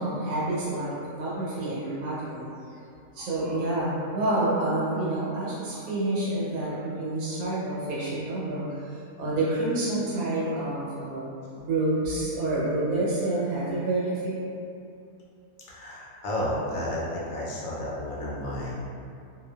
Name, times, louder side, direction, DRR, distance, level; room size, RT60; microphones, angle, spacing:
voice 1, 0.0-2.8 3.1-11.3 11.6-14.4, right 2 dB, 80° right, -7 dB, 1.2 m, -28 dB
voice 2, 15.7-18.7, left 1 dB, 75° left, -5 dB, 0.9 m, -32 dB
2.7 x 2.2 x 2.2 m, 2.5 s
omnidirectional pair, 1.5 m